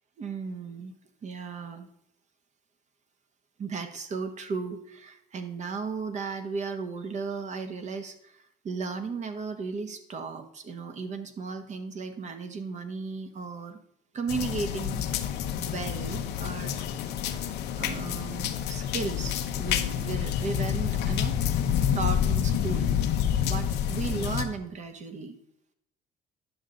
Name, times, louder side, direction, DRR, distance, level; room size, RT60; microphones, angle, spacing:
voice 1, 0.2-0.9 1.2-1.9 3.6-13.8 14.1-15.2 15.6-16.7 17.3-21.3 21.9-22.9 23.4-25.4, right 4 dB, 45° right, 8 dB, 1.2 m, -35 dB
sound 1, 14.3-24.4, left 9 dB, 80° left, 0.8 m, -28 dB
10.5 x 6.6 x 3.8 m, 0.73 s
cardioid pair, 110°, 17 cm